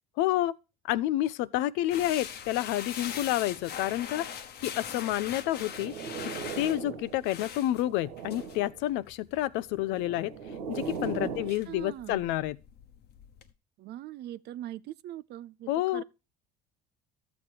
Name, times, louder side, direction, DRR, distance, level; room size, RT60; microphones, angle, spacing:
voice 1, 0.2-0.6 0.9-4.3 4.6-5.9 6.2-10.3 10.7-12.6 15.7-16.0, left 14 dB, 70° left, 0.7 m, -29 dB
sound 1, 1.9-13.5, left 8 dB, 55° left, 1.2 m, -43 dB
sound 2, 5.5-7.3 7.7-8.8 9.7-11.6, right 5 dB, 90° right, 1.6 m, -39 dB
voice 2, 11.2-12.2 13.8-16.0, right 13 dB, 55° right, 0.6 m, -42 dB
12.5 x 7.1 x 4.6 m
supercardioid pair, 80°, 20 cm